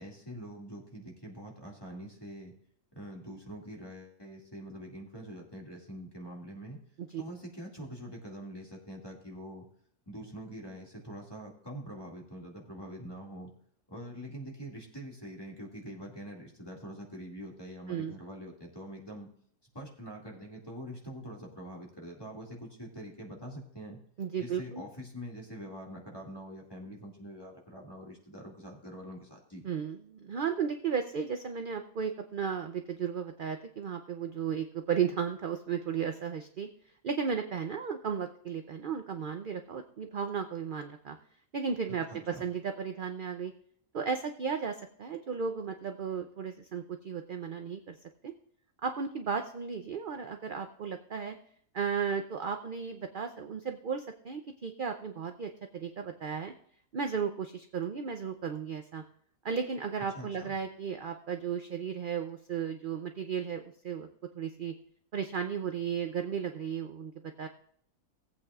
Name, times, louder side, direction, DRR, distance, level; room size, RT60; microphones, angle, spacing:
voice 1, 0.0-2.5 2.9-6.8 7.2-9.7 10.1-13.5 13.9-19.3 19.7-24.0 24.4-29.6 41.9-42.5 60.1-60.6, equal, 15° left, -1 dB, 2.2 m, -44 dB
voice 2, 24.2-24.8 29.6-36.7 37.0-41.2 41.5-43.5 43.9-47.9 48.2-48.3 48.8-51.3 51.7-56.5 56.9-59.0 59.4-64.1 64.3-64.7 65.1-67.1 67.4-67.5, right 6 dB, 55° right, 6 dB, 0.6 m, -34 dB
18.5 x 8.5 x 2.4 m, 0.64 s
omnidirectional pair, 1.6 m